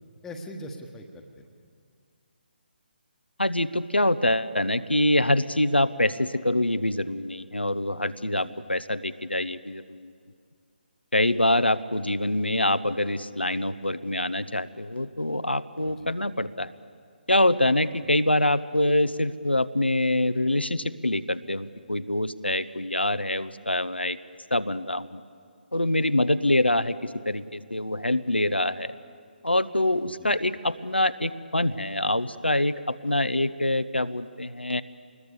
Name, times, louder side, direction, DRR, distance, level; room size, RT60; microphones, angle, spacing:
voice 1, 0.2-1.5 8.3-8.5 15.8-16.1 30.1-30.4, left 1 dB, 5° left, 4 dB, 1.4 m, -42 dB
voice 2, 3.4-10.1 11.1-16.7 17.3-24.2 24.5-25.2 25.7-28.9 29.4-34.8, left 1 dB, 85° left, 13 dB, 0.8 m, -25 dB
26.0 x 20.5 x 6.9 m, 2.2 s
figure-of-eight pair, 145°, 6 cm